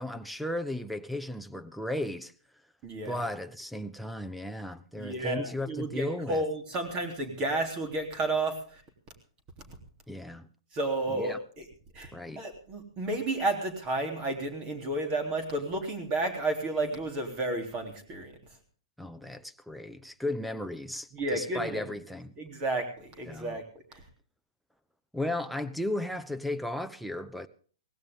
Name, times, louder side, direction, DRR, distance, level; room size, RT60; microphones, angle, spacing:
voice 1, 0.0-2.3 3.0-6.4 10.1-10.5 11.1-11.4 12.1-12.4 19.0-22.3 23.3-23.6 25.1-27.5, left 1 dB, ahead, 0.8 m, -35 dB
voice 2, 2.8-3.2 5.0-8.6 10.7-11.6 11.9-12.1 12.4-18.3 21.1-21.8 22.4-23.6 23.9-24.0, right 2 dB, 30° right, 3.4 m, -32 dB
18.0 x 16.0 x 3.7 m
hypercardioid pair, 135°, 3 cm